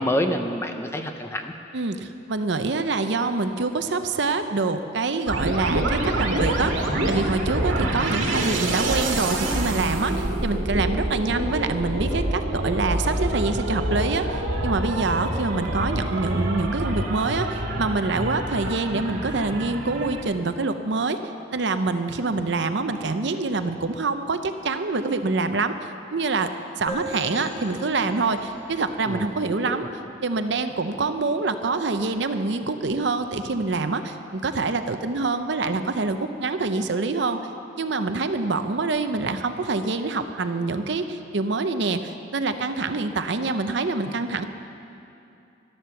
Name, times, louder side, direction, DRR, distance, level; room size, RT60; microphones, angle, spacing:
voice 1, 0.0-1.5 7.8-8.0 29.1-29.3 29.7-29.9, equal, 15° left, 6 dB, 0.6 m, -27 dB
voice 2, 1.7-21.2 21.5-26.5 26.8-29.9 30.2-37.4 37.8-44.5, right 3 dB, 60° right, 9 dB, 0.6 m, -26 dB
sound 1, 5.3-20.2, right 1 dB, 80° right, 1.7 m, -26 dB
sound 2, 26.9-30.4, equal, 35° left, 3.9 m, -39 dB
12.5 x 12.0 x 6.9 m, 2.7 s
head